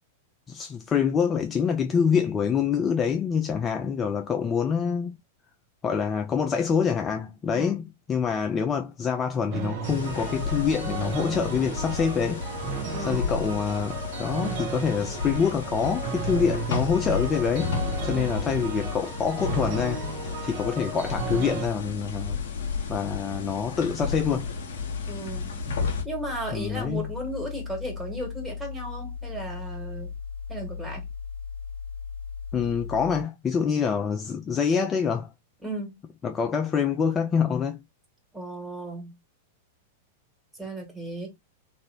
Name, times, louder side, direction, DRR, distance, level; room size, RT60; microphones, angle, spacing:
voice 1, 0.5-5.1 5.8-12.4 13.1-17.7 18.0-20.0 20.4-22.4 22.9-24.5 26.5-27.1 32.5-35.3 36.2-37.8, left 6 dB, 25° left, 0.4 m, -26 dB
sound 1, 9.5-21.7, right 6 dB, 45° right, 0.8 m, -35 dB
sound 2, 9.8-26.0, left 5 dB, 60° left, 0.7 m, -32 dB
voice 2, 12.9-13.3 25.1-25.5 26.0-30.1 30.5-31.0 35.6-36.0 38.3-39.1 40.6-41.3, right 1 dB, 5° right, 1.7 m, -35 dB
sound 3, 24.8-33.2, left 6 dB, 80° right, 1.2 m, -37 dB
3.0 x 2.5 x 2.9 m
figure-of-eight pair, 95°, 0 cm